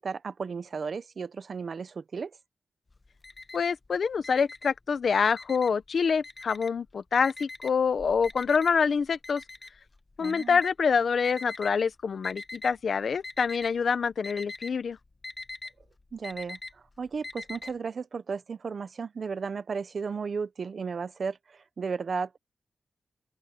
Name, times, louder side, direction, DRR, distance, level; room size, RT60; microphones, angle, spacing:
voice 1, 0.0-2.4 10.2-10.6 16.1-22.4, right 5 dB, 60° right, 0.9 m, -34 dB
Alarm, 2.9-3.9 4.2-5.8 6.2-6.9 7.2-11.7 12.2-12.8 13.1-13.8 14.0-17.7, left 3 dB, 30° left, 1.3 m, -42 dB
voice 2, 3.5-9.4 10.2-15.0, left 6 dB, 70° left, 1.1 m, -26 dB
open air
wide cardioid pair, 95°, 0 cm